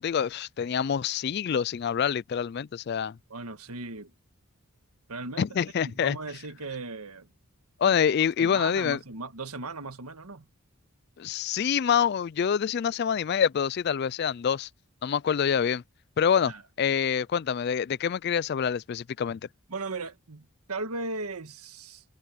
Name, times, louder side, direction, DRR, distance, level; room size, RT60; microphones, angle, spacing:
voice 1, 0.0-3.2 5.4-6.2 7.8-9.0 11.2-14.7 15.0-15.8 16.2-16.5 16.8-19.4, left 7 dB, 45° left, 0.3 m, -26 dB
voice 2, 3.3-4.1 5.1-5.5 5.8-7.3 7.8-7.9 8.4-10.4 16.4-16.6 19.7-22.0, right 3 dB, 85° right, 1.6 m, -37 dB
head